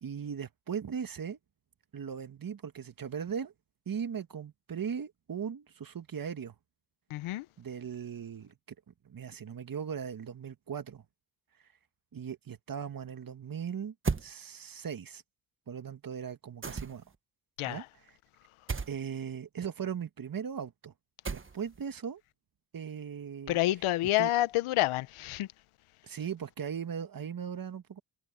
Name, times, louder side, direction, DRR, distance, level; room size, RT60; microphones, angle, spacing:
voice 1, 0.0-1.4 1.9-3.5 3.9-6.6 7.6-8.5 8.9-11.0 12.1-13.9 14.2-15.2 15.7-17.0 17.7-17.8 18.9-20.9 21.3-22.2 22.7-23.6 24.2-24.3 26.0-28.0, right 7 dB, 45° right, 1.8 m, -38 dB
voice 2, 7.1-7.5 17.6-17.8 23.5-25.5, left 16 dB, 80° left, 1.2 m, -28 dB
sound 1, 14.0-14.3 16.6-17.2 18.7-19.0 21.2-21.8, right 5 dB, 25° right, 1.4 m, -33 dB
supercardioid pair, 65°, 49 cm